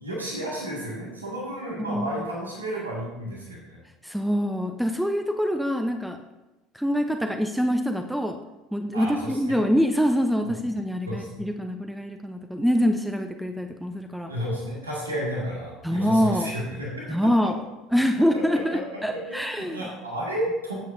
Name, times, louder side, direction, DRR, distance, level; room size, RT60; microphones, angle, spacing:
voice 1, 0.0-3.8 8.9-9.6 10.4-10.5 11.1-11.4 14.3-17.1 18.3-18.8 19.1-20.8, equal, 85° right, -4 dB, 2.0 m, -32 dB
voice 2, 1.8-2.2 4.0-6.2 6.7-8.4 8.7-14.3 15.8-16.5 17.1-17.6 17.9-19.8, equal, ahead, 5 dB, 0.7 m, -25 dB
14.5 x 7.6 x 2.7 m, 1.1 s
figure-of-eight pair, 65°, 0 cm